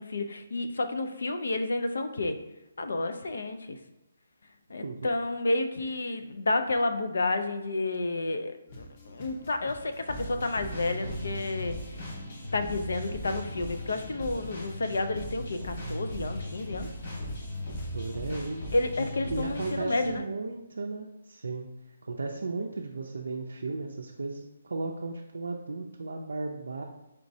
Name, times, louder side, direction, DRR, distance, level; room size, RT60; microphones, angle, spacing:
voice 1, 0.0-2.4 2.8-3.8 4.7-11.8 12.5-16.9 18.7-20.2, left 2 dB, 80° left, 8 dB, 0.4 m, -30 dB
sound 1, 8.7-18.4, left 2 dB, 35° left, 0.6 m, -48 dB
sound 2, 10.1-20.2, equal, 60° left, 1.4 m, -38 dB
voice 2, 17.9-18.6 19.0-26.8, right 3 dB, 90° right, 1 dB, 0.4 m, -35 dB
4.4 x 3.0 x 2.6 m, 0.96 s
hypercardioid pair, 160°, 0 cm